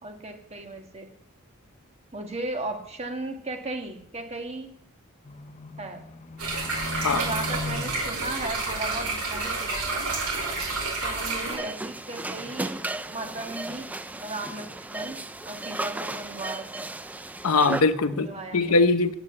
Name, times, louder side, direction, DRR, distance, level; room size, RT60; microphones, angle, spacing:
voice 1, 0.0-1.1 2.1-4.7 5.8-6.1 7.0-10.1 11.0-13.9 14.2-15.2 15.4-16.7 18.1-18.8, right 2 dB, 30° right, 4 dB, 1.4 m, -36 dB
Livestock farm animals working animals, 5.2-10.0 10.3-11.0 11.4-11.6, left 3 dB, 30° left, 0.7 m, -39 dB
sound 1, 6.4-11.6, right 3 dB, 85° right, 5.6 m, -29 dB
sound 2, 11.5-17.8, right 2 dB, 5° right, 0.3 m, -35 dB
voice 2, 17.4-19.1, left 3 dB, 85° left, 11 dB, 0.8 m, -21 dB
8.7 x 7.8 x 8.4 m, 0.73 s
head